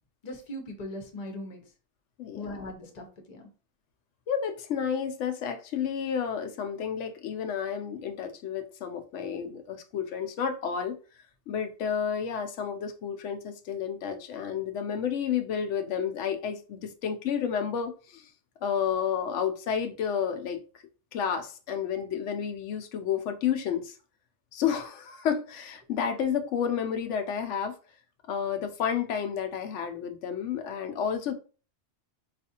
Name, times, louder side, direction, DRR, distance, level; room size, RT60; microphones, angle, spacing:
voice 1, 0.2-1.6 2.3-3.5, left 1 dB, 40° left, 0.8 m, -39 dB
voice 2, 2.2-2.7 4.3-11.0 11.5-18.3 18.6-20.6 21.1-24.0 24.5-27.8 28.3-31.3, left 7 dB, 90° left, 0.9 m, -31 dB
4.1 x 2.4 x 2.8 m
omnidirectional pair, 1.2 m